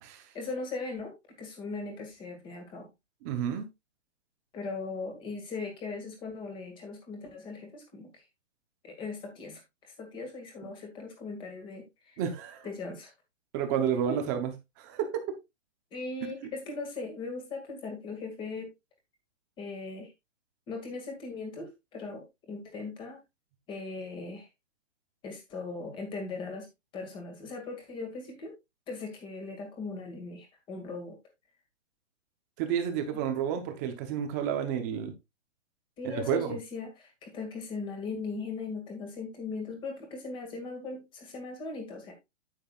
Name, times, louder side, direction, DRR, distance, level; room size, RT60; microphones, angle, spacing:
voice 1, 0.3-2.9 4.5-8.3 8.8-12.2 12.6-13.1 14.1-14.2 15.9-18.7 19.6-20.1 20.7-23.2 23.7-24.5 25.2-26.7 26.9-28.5 28.9-31.2 36.0-42.1, left 3 dB, 15° left, 4 dB, 2.0 m, -39 dB
voice 2, 3.2-3.7 12.2-12.6 13.5-14.5 14.8-15.3 32.6-35.1 36.0-36.5, right 8 dB, 15° right, 6 dB, 0.7 m, -30 dB
9.2 x 9.1 x 2.3 m, 0.22 s
hypercardioid pair, 165°, 38 cm